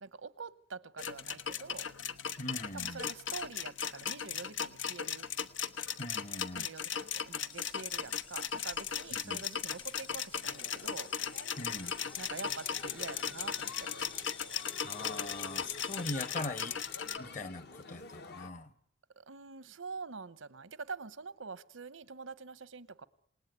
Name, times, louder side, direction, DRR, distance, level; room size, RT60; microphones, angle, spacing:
voice 1, 0.0-1.9 2.7-5.3 6.5-11.1 12.2-13.9 19.2-23.1, right 4 dB, 90° right, 1.0 m, -45 dB
sound 1, 1.0-17.2, left 8 dB, 85° left, 1.1 m, -37 dB
voice 2, 2.4-3.1 6.0-6.7 9.1-9.4 11.6-11.9 14.8-16.8 17.2-18.7, left 2 dB, 40° left, 1.3 m, -41 dB
sound 2, 7.5-16.3, left 5 dB, 25° left, 1.0 m, -52 dB
sound 3, 10.4-18.5, left 4 dB, 60° left, 1.2 m, -50 dB
28.0 x 18.5 x 9.5 m
head